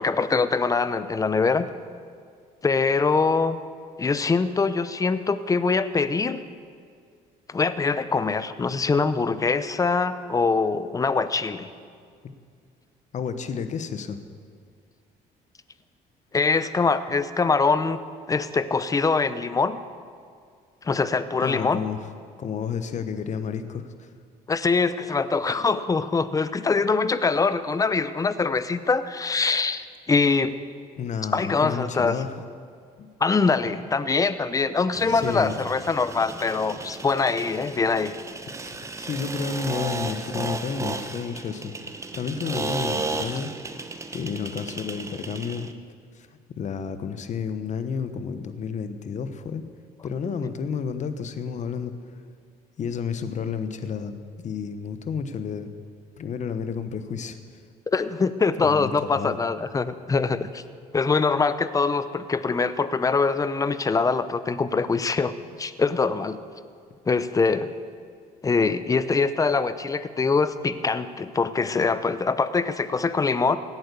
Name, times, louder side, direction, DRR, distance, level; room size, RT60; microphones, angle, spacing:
voice 1, 0.0-1.7 2.6-3.6 4.0-6.4 7.5-11.7 16.3-18.0 18.3-19.8 20.8-21.8 24.5-30.5 31.3-32.1 33.2-38.1 57.9-60.6 60.9-66.4 67.1-67.7 68.4-73.6, left 4 dB, 20° left, 14 dB, 0.6 m, -23 dB
voice 2, 13.1-14.2 21.4-22.1 22.4-24.1 31.0-32.3 33.0-33.1 35.1-35.5 38.7-41.7 42.1-43.5 44.1-45.7 46.1-49.6 50.0-51.9 52.8-55.7 56.2-57.4 58.6-59.4, left 6 dB, 45° left, 10 dB, 1.0 m, -31 dB
sound 1, 34.9-45.7, right 3 dB, 15° right, 0.9 m, -34 dB
16.5 x 8.8 x 6.9 m, 2.2 s
cardioid pair, 110°, 17 cm